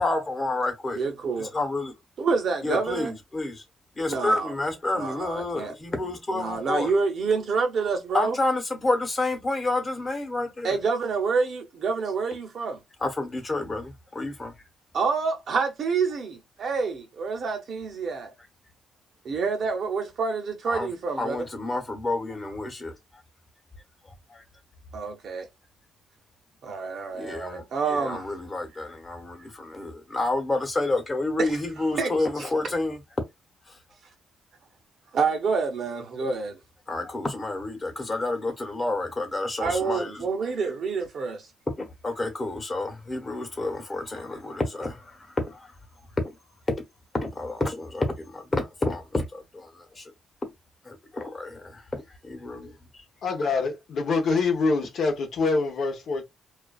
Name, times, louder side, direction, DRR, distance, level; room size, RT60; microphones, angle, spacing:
voice 1, 0.0-1.0 1.4-1.9 2.6-3.6 4.0-6.9 8.1-10.7 13.0-14.5 20.7-20.9 21.2-22.9 24.3-24.4 27.1-33.0 33.7-33.8 36.9-40.3 41.7-45.7 46.2-46.3 46.7-46.8 47.1-50.1 50.4-50.5 50.8-53.0, left 2 dB, 25° left, 1.0 m, -29 dB
voice 2, 0.9-1.5 2.2-3.2 4.1-4.5 4.9-5.7 6.3-8.4 10.6-12.8 14.9-18.3 19.2-21.4 24.9-25.5 26.6-28.3 31.4-32.5 35.1-36.6 39.6-41.5, right 5 dB, 60° right, 0.7 m, -28 dB
voice 3, 53.2-56.2, left 4 dB, 65° left, 0.9 m, -25 dB
2.5 x 2.3 x 2.3 m
cardioid pair, 100°, 0 cm